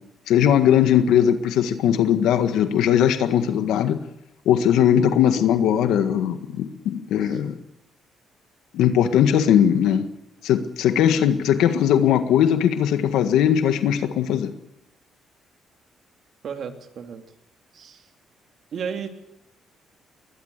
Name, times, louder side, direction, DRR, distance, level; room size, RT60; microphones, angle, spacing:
voice 1, 0.3-4.0 4.4-7.5 8.7-10.0 10.4-14.5, left 9 dB, 85° left, 9 dB, 1.7 m, -19 dB
voice 2, 16.4-17.2 17.7-18.0 18.7-19.1, right 7 dB, 60° right, 6 dB, 2.8 m, -33 dB
21.5 x 20.5 x 6.7 m, 0.87 s
cardioid pair, 90°, 0 cm